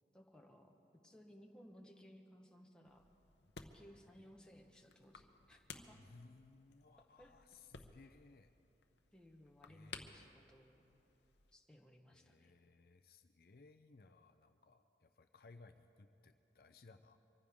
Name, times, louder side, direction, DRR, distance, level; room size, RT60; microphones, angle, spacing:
voice 1, 0.1-0.8 1.0-3.1 3.6-6.0 7.2-7.4 9.1-10.8 11.5-12.5, equal, 5° left, 1 dB, 1.1 m, -61 dB
sound 1, 2.8-11.6, left 5 dB, 80° left, 0.8 m, -58 dB
voice 2, 5.9-8.5 9.7-10.4 12.1-17.2, left 3 dB, 55° left, 8 dB, 0.5 m, -62 dB
24.5 x 15.0 x 3.6 m, 2.9 s
head